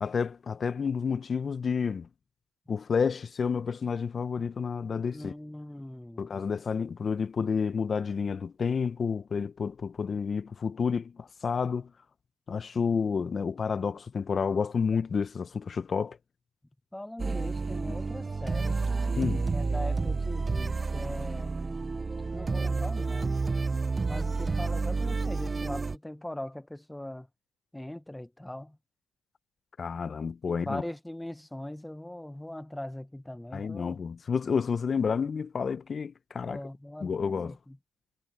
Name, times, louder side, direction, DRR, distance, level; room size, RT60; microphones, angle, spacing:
voice 1, 0.0-2.1 2.7-5.3 6.2-11.9 12.5-16.2 19.2-19.5 29.8-30.8 33.5-36.6 37.0-37.6, left 6 dB, 40° left, 1.1 m, -30 dB
voice 2, 5.1-6.3 16.9-18.9 19.5-21.5 22.3-23.4 24.1-27.3 27.7-28.8 30.5-34.0 36.4-37.8, left 1 dB, 5° left, 1.1 m, -40 dB
sound 1, 17.2-26.0, right 4 dB, 25° right, 0.8 m, -30 dB
supercardioid pair, 75°, 0 cm